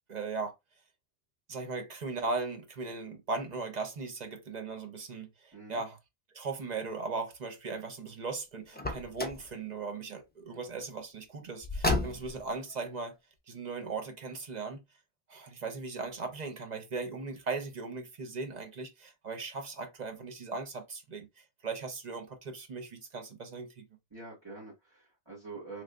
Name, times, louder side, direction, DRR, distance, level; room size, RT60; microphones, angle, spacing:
voice 1, 0.1-0.5 1.5-6.0 6.3-13.2 13.5-14.8 15.3-23.8, right 4 dB, 45° right, 0.7 m, -38 dB
voice 2, 5.5-5.8 24.1-25.8, right 3 dB, 25° right, 1.5 m, -46 dB
Car, 8.7-9.5 11.6-12.5, left 2 dB, 15° left, 0.4 m, -31 dB
3.3 x 3.0 x 2.4 m
omnidirectional pair, 1.1 m